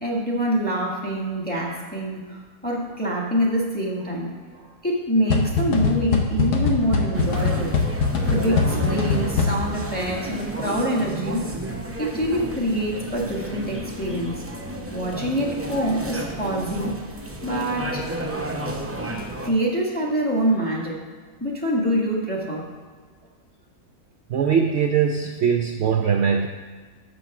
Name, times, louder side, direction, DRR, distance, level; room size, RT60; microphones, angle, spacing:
voice 1, 0.0-7.7 8.3-11.4 12.0-14.4 14.9-17.0 17.4-18.2 19.4-21.0 21.4-22.7, equal, 5° left, -3 dB, 1.5 m, -25 dB
sound 1, 5.3-9.9, left 4 dB, 80° left, 1.4 m, -23 dB
sound 2, 7.1-19.5, right 1 dB, 20° right, 0.3 m, -32 dB
voice 2, 24.3-26.5, right 7 dB, 65° right, 4 dB, 0.7 m, -21 dB
7.1 x 6.1 x 6.0 m, 1.5 s
omnidirectional pair, 1.6 m